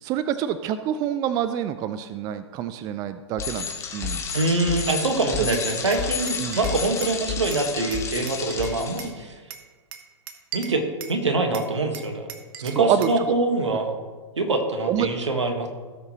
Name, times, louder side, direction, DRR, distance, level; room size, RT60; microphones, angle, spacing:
voice 1, 0.0-4.2 5.4-5.5 6.4-6.6 12.7-13.1 14.9-15.1, right 10 dB, 25° right, 12 dB, 0.4 m, -27 dB
Bicycle, 3.4-9.0, left 6 dB, 20° left, 1.5 m, -31 dB
voice 2, 4.3-9.3 10.5-12.3 12.6-13.9 14.4-15.7, right 2 dB, 75° right, 4 dB, 1.6 m, -24 dB
Glass, 5.5-7.2 7.5-9.2 9.5-11.2 11.5-13.2, right 8 dB, 50° right, 1.0 m, -40 dB
17.0 x 6.6 x 3.1 m, 1.4 s
figure-of-eight pair, 110°, 15 cm